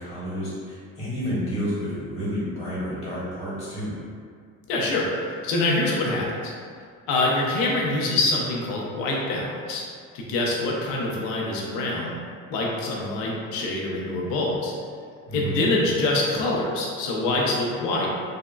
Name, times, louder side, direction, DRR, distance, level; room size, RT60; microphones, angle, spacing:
voice 1, 0.0-4.0 15.3-15.6, equal, 10° left, -10 dB, 0.9 m, -30 dB
voice 2, 4.7-6.3 7.1-9.8 10.1-12.2 12.5-14.7 15.3-18.1, left 2 dB, 85° left, -3 dB, 0.7 m, -25 dB
3.6 x 2.1 x 2.2 m, 2.1 s
cardioid pair, 115°, 34 cm